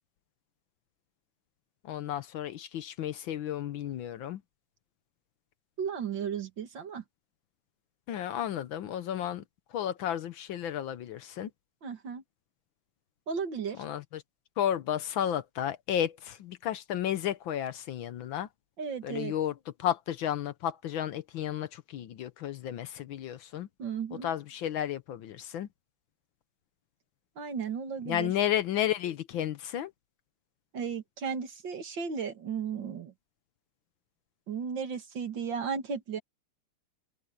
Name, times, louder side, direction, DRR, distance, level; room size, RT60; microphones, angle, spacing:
voice 1, 1.8-4.4 8.1-9.4 9.7-11.5 13.8-14.2 14.6-18.5 19.0-19.5 19.8-23.7 24.2-25.7 28.0-29.9, left 11 dB, 70° left, 1.5 m, -32 dB
voice 2, 5.8-7.0 11.8-12.2 13.3-13.8 18.8-19.3 23.8-24.3 27.4-28.3 30.7-33.1 34.5-36.2, right 6 dB, 60° right, 2.4 m, -35 dB
open air
omnidirectional pair, 2.4 m